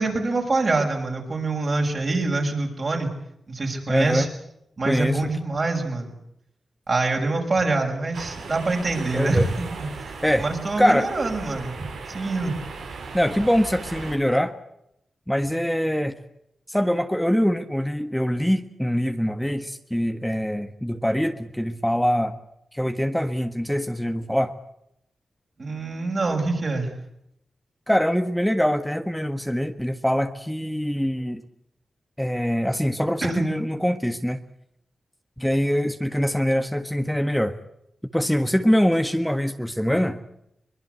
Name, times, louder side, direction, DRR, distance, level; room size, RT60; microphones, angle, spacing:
voice 1, 0.0-3.1 3.5-4.3 4.8-6.1 6.9-9.5 9.9-12.6 25.6-26.9 33.2-33.4, right 3 dB, 55° right, 2 dB, 6.3 m, -25 dB
voice 2, 3.9-4.3 4.8-5.3 9.1-9.5 10.2-10.5 10.8-11.1 13.1-14.5 15.3-16.1 16.7-22.4 22.7-24.5 27.9-31.4 32.2-34.4 35.4-37.6 38.1-40.2, equal, 5° left, 7 dB, 1.5 m, -23 dB
sound 1, 8.1-14.2, right 4 dB, 90° right, 3.8 m, -37 dB
23.0 x 21.5 x 8.2 m, 0.79 s
supercardioid pair, 40°, 0 cm